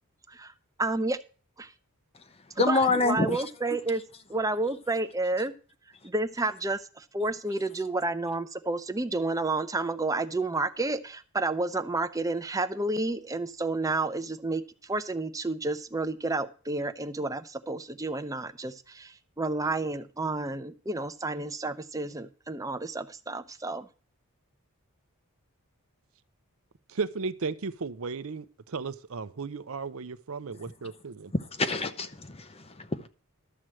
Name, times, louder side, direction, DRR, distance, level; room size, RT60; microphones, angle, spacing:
voice 1, 0.8-1.2 1.6-1.7 2.7-4.0 4.3-5.5 6.0-14.6 14.9-23.9, right 2 dB, 15° right, 0.7 m, -30 dB
voice 2, 2.6-3.4 31.3-33.1, left 3 dB, 25° left, 0.7 m, -27 dB
voice 3, 26.9-31.3, right 4 dB, 65° right, 0.6 m, -35 dB
12.5 x 4.7 x 7.6 m
head